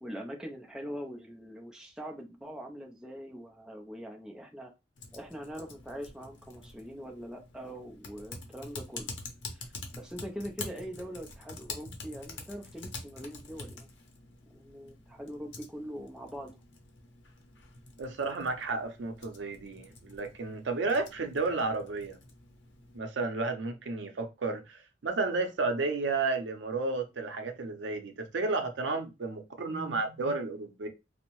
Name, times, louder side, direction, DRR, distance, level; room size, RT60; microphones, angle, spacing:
voice 1, 0.0-4.7 5.1-9.1 9.5-13.9 14.4-16.6 29.7-29.9, equal, 5° right, 0.4 m, -42 dB
Typing, 5.0-23.0, left 3 dB, 85° left, 0.6 m, -47 dB
voice 2, 18.0-22.2 22.9-30.9, right 3 dB, 80° right, 0.5 m, -32 dB
2.6 x 2.0 x 2.9 m
head